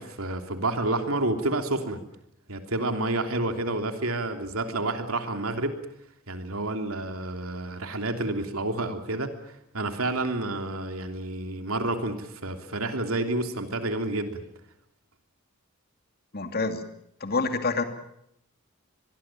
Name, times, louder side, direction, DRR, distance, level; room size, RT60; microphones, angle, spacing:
voice 1, 0.0-2.0 2.5-5.7 6.3-9.3 9.7-14.4, right 2 dB, 85° right, 6 dB, 3.2 m, -29 dB
voice 2, 16.3-16.8 17.2-17.8, left 3 dB, 50° left, 7 dB, 2.6 m, -27 dB
24.5 x 22.0 x 7.5 m, 0.76 s
head